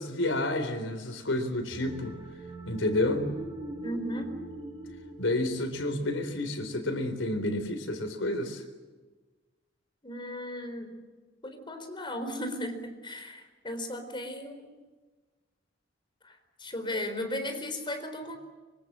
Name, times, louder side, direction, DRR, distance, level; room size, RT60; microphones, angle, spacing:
voice 1, 0.0-2.2 2.7-3.3 5.2-8.6, left 1 dB, 90° left, 7 dB, 4.0 m, -30 dB
sound 1, 1.7-7.0, right 1 dB, 20° right, 5.4 m, -42 dB
voice 2, 3.8-4.4 10.0-10.9 11.4-14.7 16.2-18.4, left 1 dB, 25° left, 7 dB, 4.1 m, -36 dB
25.0 x 24.5 x 7.6 m, 1.3 s
head